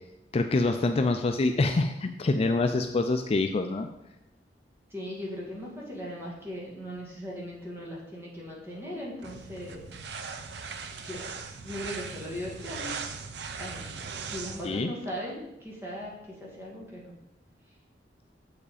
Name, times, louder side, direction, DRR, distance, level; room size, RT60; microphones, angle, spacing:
voice 1, 0.3-3.9 14.6-14.9, left 3 dB, 35° left, 6 dB, 0.4 m, -26 dB
voice 2, 4.9-9.8 11.0-11.3 11.6-12.9 13.6-13.9 14.2-17.1, equal, 15° right, -4 dB, 2.1 m, -38 dB
sound 1, 9.2-14.8, right 5 dB, 70° right, 0.6 m, -39 dB
7.2 x 4.9 x 4.9 m, 0.89 s
head